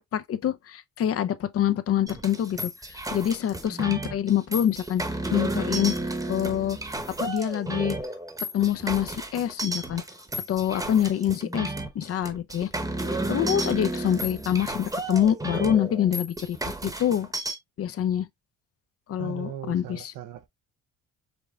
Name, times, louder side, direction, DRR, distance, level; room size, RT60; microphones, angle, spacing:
voice 1, 0.0-2.7 3.1-5.0 5.3-6.0 6.3-6.8 7.2-8.0 8.5-10.0 10.5-12.7 13.3-17.3 17.8-18.3 19.1-20.1, left 10 dB, 50° left, 0.5 m, -26 dB
sound 1, 2.1-17.6, right 1 dB, 10° right, 0.9 m, -32 dB
voice 2, 19.2-20.5, right 10 dB, 90° right, 0.6 m, -38 dB
5.2 x 3.4 x 2.3 m
cardioid pair, 90°, 30 cm